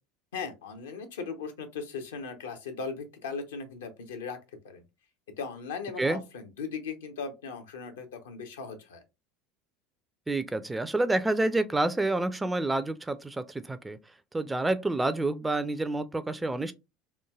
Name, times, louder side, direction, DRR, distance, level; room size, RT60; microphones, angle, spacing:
voice 1, 0.3-4.4 4.6-4.8 5.4-9.0, left 5 dB, 70° left, 0.6 m, -38 dB
voice 2, 10.3-14.0 14.3-16.7, right 2 dB, 10° right, 0.3 m, -28 dB
3.1 x 2.2 x 2.3 m
figure-of-eight pair, 70°, 0 cm